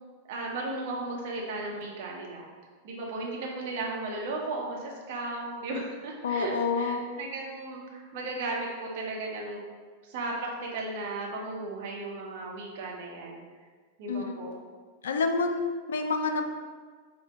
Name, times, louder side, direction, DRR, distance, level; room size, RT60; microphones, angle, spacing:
voice 1, 0.3-2.5 2.8-9.6 10.0-13.4 14.0-14.5, right 2 dB, 50° right, -1 dB, 0.8 m, -35 dB
voice 2, 6.2-7.0 14.1-14.4 15.0-16.5, left 4 dB, 65° left, 6 dB, 0.3 m, -28 dB
4.8 x 2.1 x 3.5 m, 1.5 s
figure-of-eight pair, 90°, 0 cm